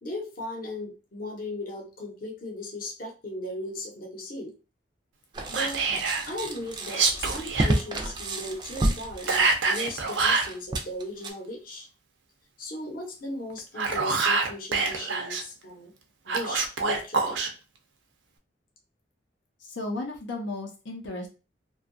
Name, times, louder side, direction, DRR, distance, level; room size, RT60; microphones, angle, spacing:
voice 1, 0.0-4.5 5.5-5.8 6.3-11.9 12.6-15.9 16.3-17.4, left 1 dB, 50° left, 0 dB, 0.8 m, -37 dB
sound 1, 5.3-11.3, right 1 dB, 25° right, 0.3 m, -31 dB
Whispering, 5.5-6.3 6.9-7.7 9.3-10.5 13.6-15.4 16.3-17.5, right 4 dB, 85° right, 0.5 m, -25 dB
voice 2, 19.6-21.3, left 2 dB, 85° left, 0 dB, 0.6 m, -34 dB
2.6 x 2.2 x 2.5 m, 0.32 s
head